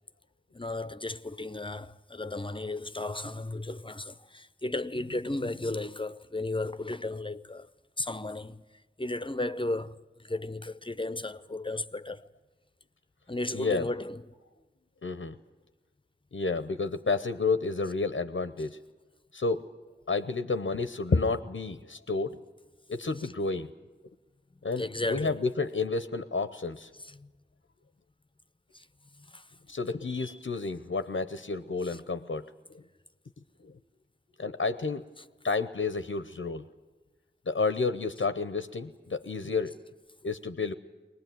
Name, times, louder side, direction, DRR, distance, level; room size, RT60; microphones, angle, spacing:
voice 1, 0.5-7.7 8.0-8.6 9.0-12.3 13.3-14.2 24.8-25.4 27.0-27.3 28.7-28.9 29.1-29.5 30.1-30.4 31.8-32.0, left 2 dB, 25° left, 0.7 m, -35 dB
voice 2, 13.5-13.9 15.0-15.4 16.3-18.8 19.3-19.7 20.1-22.5 22.9-23.7 24.6-26.9 29.7-32.8 33.6-33.7 34.4-35.0 35.4-36.6 37.5-39.8 40.2-40.7, left 4 dB, 90° left, 0.8 m, -30 dB
22.0 x 20.0 x 9.3 m
wide cardioid pair, 40°, 20 cm